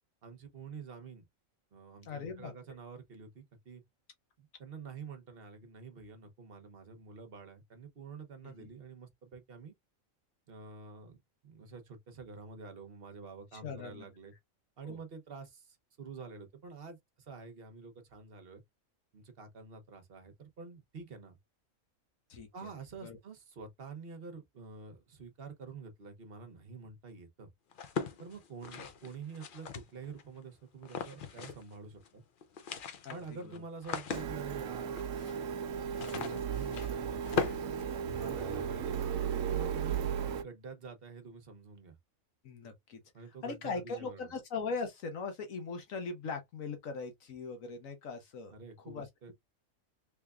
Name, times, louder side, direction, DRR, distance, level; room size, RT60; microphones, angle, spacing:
voice 1, 0.2-1.2 1.7-3.8 4.4-9.7 10.5-14.3 14.8-18.6 19.1-21.4 22.5-27.5 28.2-32.2 33.1-35.0 36.0-37.5 38.0-39.0 39.5-42.0 43.1-44.3 48.5-49.3, right 5 dB, 50° right, 1.0 m, -48 dB
voice 2, 2.0-2.5 8.4-8.7 13.5-14.1 14.8-15.0 22.3-22.5 23.0-23.2 33.0-33.1 38.2-38.4 42.4-43.0 43.4-48.5 48.9-49.3, left 4 dB, 80° left, 1.3 m, -40 dB
sound 1, 27.7-30.2 30.8-32.1 32.4-38.6, left 5 dB, 55° left, 0.6 m, -40 dB
Printer, 34.1-40.4, right 8 dB, 80° right, 1.0 m, -35 dB
3.4 x 3.4 x 2.3 m
omnidirectional pair, 1.4 m